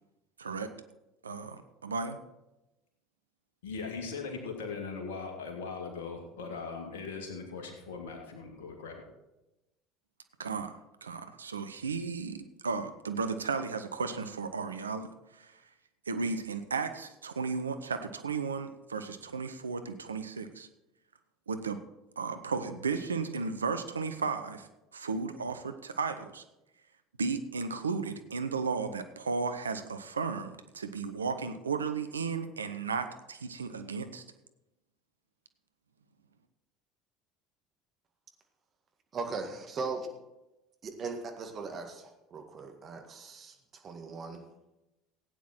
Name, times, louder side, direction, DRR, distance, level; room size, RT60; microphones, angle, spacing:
voice 1, 0.4-0.7 1.2-2.2 10.4-15.6 16.1-20.7 21.5-21.8 22.2-26.4 27.2-34.2, right 4 dB, 80° right, 10 dB, 0.7 m, -34 dB
voice 2, 3.6-9.0, left 4 dB, 70° left, 2 dB, 2.3 m, -39 dB
voice 3, 39.1-40.1 40.8-43.5 43.8-44.4, right 4 dB, 35° right, 4 dB, 1.9 m, -39 dB
15.5 x 9.4 x 4.4 m, 0.97 s
figure-of-eight pair, 65°, 0 cm